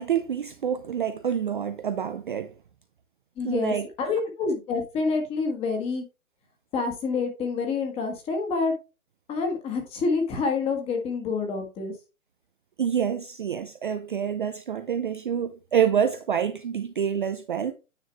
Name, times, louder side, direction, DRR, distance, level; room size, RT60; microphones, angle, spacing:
voice 1, 0.0-2.5 3.4-3.9 12.8-17.7, right 8 dB, 40° right, 0.4 m, -27 dB
voice 2, 3.4-6.0 6.7-8.7 9.3-11.9, left 4 dB, 15° left, 1.4 m, -27 dB
9.5 x 4.7 x 3.4 m
hypercardioid pair, 150°, 42 cm